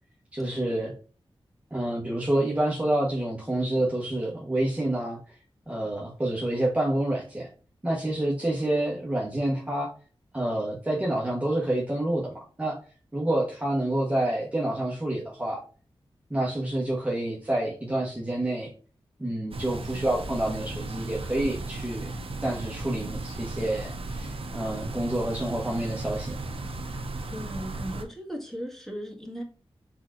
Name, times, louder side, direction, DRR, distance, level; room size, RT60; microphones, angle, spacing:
voice 1, 0.3-0.9 1.7-5.4 5.7-7.5 7.8-9.9 10.3-12.8 13.1-15.6 16.3-18.7 19.2-22.1 22.4-26.4, right 1 dB, 15° right, 1.1 m, -28 dB
sound 1, 19.5-28.0, right 2 dB, 70° right, 0.8 m, -35 dB
voice 2, 27.3-29.4, equal, 5° left, 1.6 m, -37 dB
4.7 x 4.2 x 2.5 m
wide cardioid pair, 100°, 10 cm